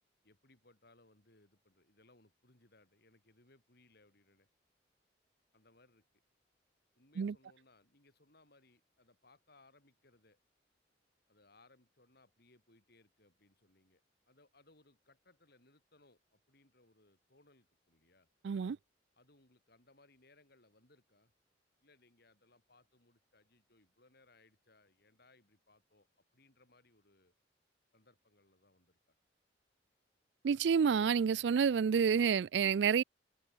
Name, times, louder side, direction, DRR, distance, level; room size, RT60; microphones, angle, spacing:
voice 1, 0.2-4.5 5.5-6.0 6.9-10.4 11.3-18.3 19.1-21.3 21.8-27.3 27.9-29.1, left 2 dB, 60° left, 6.7 m, -67 dB
voice 2, 18.4-18.8 30.4-33.0, right 6 dB, 70° right, 0.4 m, -29 dB
head